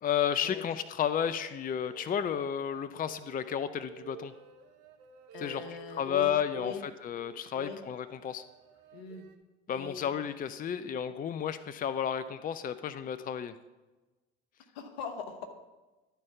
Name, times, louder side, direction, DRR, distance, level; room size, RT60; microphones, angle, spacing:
voice 1, 0.0-4.3 5.4-5.6 6.0-8.4 9.7-13.6, left 8 dB, 30° left, 12 dB, 0.5 m, -32 dB
sound 1, 0.6-9.4, right 8 dB, 70° right, 1.0 m, -53 dB
voice 2, 5.3-6.3 6.5-6.8 7.5-7.8 8.9-9.3 9.7-10.1 14.7-15.5, left 6 dB, 75° left, 6 dB, 1.1 m, -41 dB
12.0 x 4.5 x 5.8 m, 1.2 s
hypercardioid pair, 55°, 30 cm